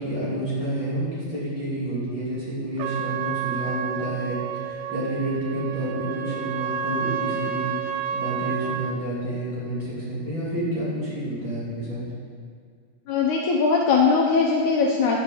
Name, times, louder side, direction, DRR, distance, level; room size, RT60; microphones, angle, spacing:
voice 1, 0.0-12.0, right 1 dB, 35° right, -8 dB, 3.3 m, -29 dB
Trumpet, 2.8-9.0, right 8 dB, 80° right, 2.2 m, -30 dB
voice 2, 13.1-15.2, left 4 dB, 70° left, -1 dB, 2.0 m, -20 dB
10.5 x 7.2 x 7.1 m, 2.1 s
omnidirectional pair, 4.1 m